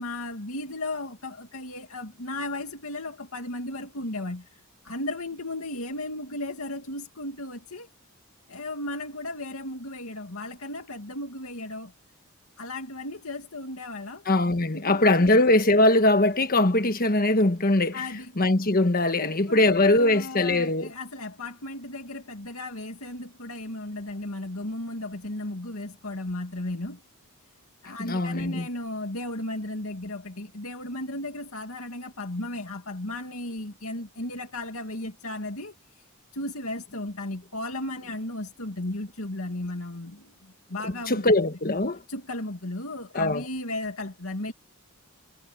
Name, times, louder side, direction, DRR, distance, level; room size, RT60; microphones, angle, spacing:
voice 1, 0.0-4.4 4.8-7.9 8.5-11.9 12.6-14.2 14.7-15.3 17.9-18.3 19.2-27.0 27.8-35.7 36.3-41.2 42.1-44.5, left 2 dB, 75° left, 2.5 m, -35 dB
voice 2, 14.2-18.1 18.4-20.9 28.0-28.7 40.8-42.0 43.1-43.5, left 2 dB, 40° left, 1.5 m, -21 dB
head